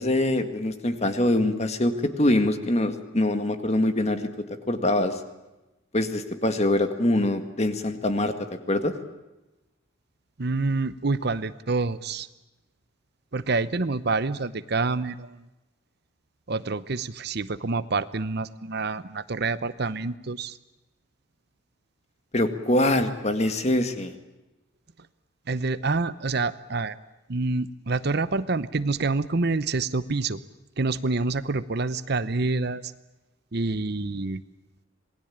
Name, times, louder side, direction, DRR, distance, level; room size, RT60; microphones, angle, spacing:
voice 1, 0.0-4.2 4.7-5.2 5.9-8.3 8.7-8.9 22.3-24.1, left 1 dB, 30° left, 8 dB, 1.9 m, -24 dB
voice 2, 10.4-12.3 13.3-15.4 16.5-20.6 25.5-27.0 27.3-30.4 30.8-32.9 33.5-34.4, right 3 dB, 50° right, 14 dB, 0.8 m, -27 dB
27.0 x 20.0 x 8.7 m, 1.0 s
head